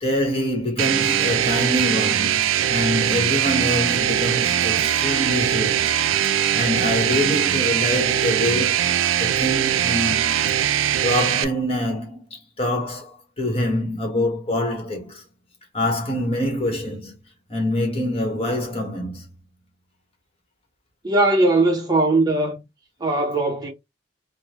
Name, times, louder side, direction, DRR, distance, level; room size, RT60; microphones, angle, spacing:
voice 1, 0.0-6.0 6.5-10.4 11.0-15.2 15.7-17.1 17.5-19.3, left 1 dB, 30° left, 1.2 m, -25 dB
sound 1, 0.8-11.4, right 10 dB, 85° right, 0.4 m, -21 dB
voice 2, 21.0-22.6 23.0-23.7, right 2 dB, 20° right, 0.7 m, -19 dB
3.6 x 2.1 x 3.0 m
head